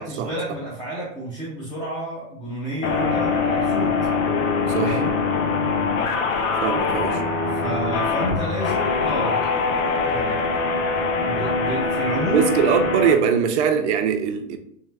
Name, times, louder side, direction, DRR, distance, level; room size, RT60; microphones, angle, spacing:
voice 1, 0.0-4.0 4.8-5.2 7.5-9.5 9.8-10.4 11.2-12.5, right 1 dB, 10° left, 0.7 m, -30 dB
sound 1, 2.8-13.1, left 4 dB, 80° left, 0.9 m, -23 dB
voice 2, 4.7-5.0 6.6-7.2 12.3-14.6, right 7 dB, 60° right, 0.7 m, -21 dB
3.7 x 3.1 x 3.2 m
supercardioid pair, 160°, 38 cm